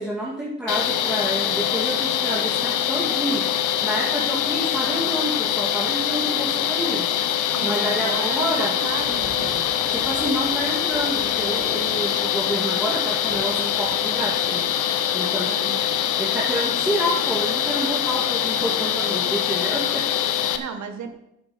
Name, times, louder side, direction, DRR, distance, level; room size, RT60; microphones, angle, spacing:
voice 1, 0.0-3.4 3.8-7.1 7.6-8.7 9.9-14.6 15.1-15.5 15.8-15.9 16.2-20.6, right 1 dB, 5° right, -6 dB, 2.5 m, -28 dB
sound 1, 0.7-20.6, left 10 dB, 85° left, 0.9 m, -24 dB
voice 2, 7.5-9.7 15.4-16.2 20.5-21.1, right 6 dB, 70° right, 6 dB, 1.6 m, -34 dB
Fireworks, 8.8-14.8, left 1 dB, 30° left, 4.3 m, -42 dB
10.5 x 8.8 x 4.4 m, 0.81 s
cardioid pair, 90°, 30 cm